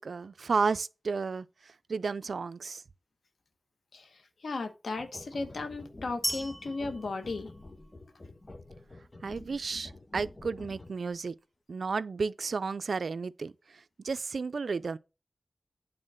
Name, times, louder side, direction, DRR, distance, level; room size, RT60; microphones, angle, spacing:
voice 1, 0.0-1.5 1.9-2.8 9.2-11.3 11.7-13.5 14.0-15.0, right 4 dB, 85° right, 0.4 m, -32 dB
voice 2, 3.9-7.5, left 3 dB, 90° left, 1.2 m, -36 dB
sound 1, 4.9-11.1, left 2 dB, 40° left, 1.2 m, -48 dB
sound 2, 6.2-8.2, right 1 dB, 5° right, 1.1 m, -37 dB
8.8 x 3.7 x 6.4 m
cardioid pair, 50°, 0 cm